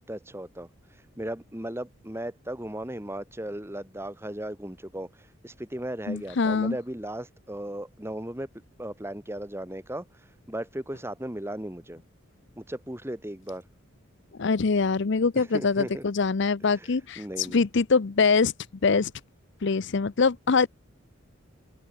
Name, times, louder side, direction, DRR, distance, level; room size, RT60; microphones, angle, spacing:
voice 1, 0.1-0.7 1.2-8.5 8.8-10.1 10.5-12.0 12.6-13.6 15.4-16.0 16.7-16.9 17.2-17.6, right 1 dB, 10° right, 1.9 m, -36 dB
voice 2, 6.1-6.8 14.4-18.5 18.8-19.1 19.6-20.7, left 4 dB, 55° left, 0.6 m, -23 dB
open air
head